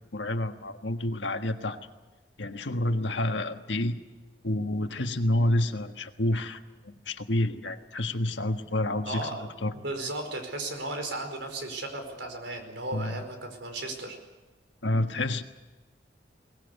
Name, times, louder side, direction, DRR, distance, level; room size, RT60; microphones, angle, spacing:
voice 1, 0.1-1.8 2.4-4.0 4.4-9.3 9.6-9.7 12.9-13.2 14.8-15.4, left 1 dB, 80° left, 7 dB, 1.5 m, -29 dB
voice 2, 9.0-14.2, right 2 dB, 85° right, 5 dB, 4.8 m, -35 dB
22.0 x 20.0 x 8.0 m, 1.2 s
head